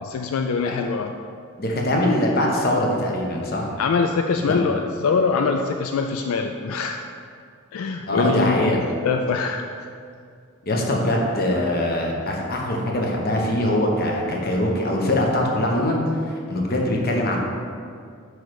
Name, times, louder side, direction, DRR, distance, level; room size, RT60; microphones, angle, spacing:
voice 1, 0.0-1.1 3.8-7.0 7.7-9.6, left 5 dB, 80° left, 5 dB, 0.3 m, -23 dB
voice 2, 1.6-3.7 4.5-4.6 8.1-8.8 10.7-17.4, left 1 dB, 45° left, -1 dB, 1.0 m, -22 dB
8.0 x 3.3 x 4.9 m, 2.2 s
head